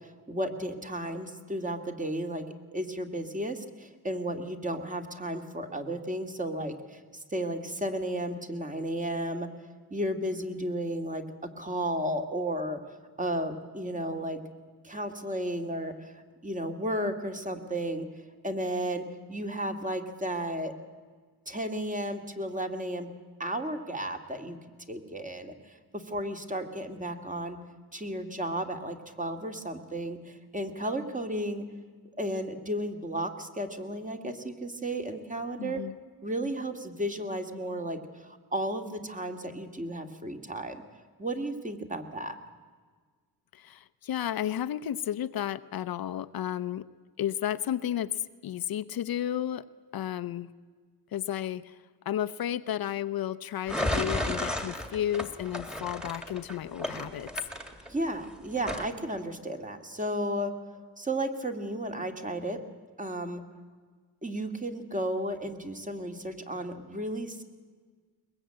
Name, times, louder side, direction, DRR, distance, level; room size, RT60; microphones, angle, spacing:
voice 1, 0.0-2.4 2.7-7.0 7.3-9.5 9.9-12.8 13.2-14.4 14.8-16.1 16.4-18.1 18.4-20.7 21.5-23.1 23.4-24.6 24.9-27.6 27.9-31.7 32.2-35.8 36.2-40.8 41.2-42.4 57.9-60.6 61.0-62.6 63.0-63.4 64.2-67.4, right 1 dB, 20° right, 5 dB, 2.1 m, -33 dB
voice 2, 35.6-36.0 43.5-46.9 47.2-49.7 49.9-50.5 51.1-57.3, left 11 dB, 60° left, 13 dB, 0.7 m, -33 dB
sound 1, 53.7-58.2 58.6-58.9, left 1 dB, ahead, 2.1 m, -33 dB
22.0 x 21.0 x 8.8 m, 1.6 s
cardioid pair, 120°, 40 cm